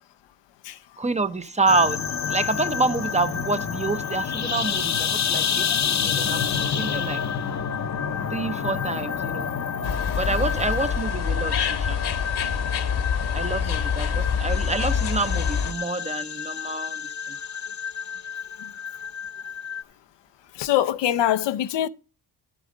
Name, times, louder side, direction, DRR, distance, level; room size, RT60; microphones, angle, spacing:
voice 1, 1.0-2.0 2.3-7.2 8.3-9.5 10.2-12.0 13.3-17.4, right 3 dB, 15° right, 0.6 m, -27 dB
sound 1, 1.7-19.8, left 7 dB, 40° left, 0.7 m, -29 dB
sound 2, 9.8-15.7, left 7 dB, 70° left, 1.3 m, -26 dB
voice 2, 20.6-21.9, left 12 dB, 90° left, 0.7 m, -23 dB
11.5 x 8.5 x 3.7 m
cardioid pair, 95°, 41 cm